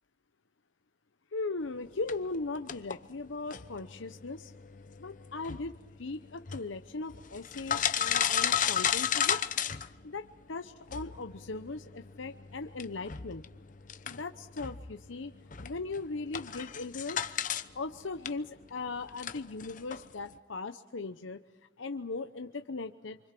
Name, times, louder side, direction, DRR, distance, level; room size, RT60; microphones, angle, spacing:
voice 1, 1.3-4.5 5.0-9.4 10.0-13.4 14.1-15.3 15.6-17.2 17.7-21.4 21.8-23.2, left 3 dB, 85° left, 7 dB, 0.9 m, -38 dB
sound 1, 2.1-10.4 10.9-17.7 17.9-20.4, left 8 dB, 45° left, 0.8 m, -35 dB
27.0 x 25.5 x 6.1 m, 1.2 s
head